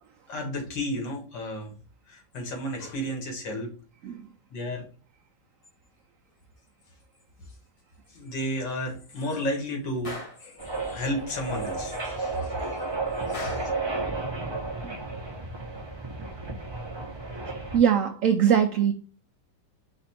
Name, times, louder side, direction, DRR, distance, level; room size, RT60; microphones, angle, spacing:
voice 1, 0.3-1.7 2.1-3.7 4.5-4.9 8.1-12.9 13.3-13.7, left 1 dB, 90° left, 2.2 m, -33 dB
Gunshot gunfire, 10.0-10.5 13.3-13.8, left 1 dB, 70° left, 0.3 m, -37 dB
sound 1, 10.6-17.8, right 3 dB, 25° right, 0.6 m, -33 dB
voice 2, 14.8-15.1 17.7-18.9, right 8 dB, 75° right, 0.7 m, -22 dB
5.1 x 2.5 x 4.1 m
omnidirectional pair, 1.9 m